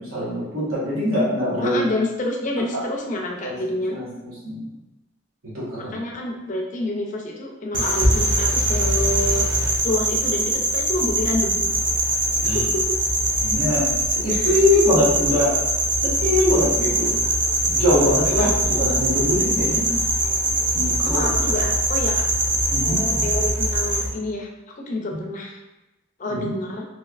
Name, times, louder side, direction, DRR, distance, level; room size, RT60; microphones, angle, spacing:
voice 1, 0.0-1.8 3.4-3.6 3.9-4.1 4.4-4.7 5.5-6.0 12.4-12.7 13.4-13.9 14.1-15.6 16.2-17.1 17.6-19.9 20.7-21.3 22.7-23.2 25.1-25.2 26.3-26.5, left 1 dB, 80° right, -8 dB, 1.3 m, -22 dB
voice 2, 1.6-3.9 5.8-9.5 9.8-11.7 12.4-13.0 14.3-14.6 18.3-18.5 21.0-22.3 22.8-25.6 26.2-26.8, left 1 dB, 35° left, 0 dB, 0.4 m, -28 dB
sound 1, 7.7-24.1, right 1 dB, 60° right, 0.8 m, -22 dB
3.0 x 2.8 x 2.4 m, 1.0 s
head